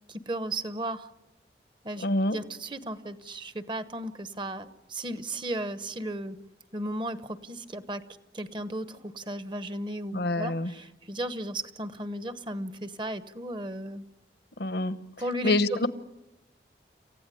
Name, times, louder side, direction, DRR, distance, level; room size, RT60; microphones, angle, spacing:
voice 1, 0.1-1.1 1.8-2.1 2.3-6.4 6.7-8.0 8.3-14.0 15.2-15.8, right 1 dB, 25° right, 12 dB, 1.0 m, -35 dB
voice 2, 2.0-2.4 10.1-10.7 14.6-15.0 15.4-15.9, left 2 dB, 70° left, 13 dB, 1.1 m, -26 dB
28.0 x 15.5 x 9.9 m, 0.94 s
head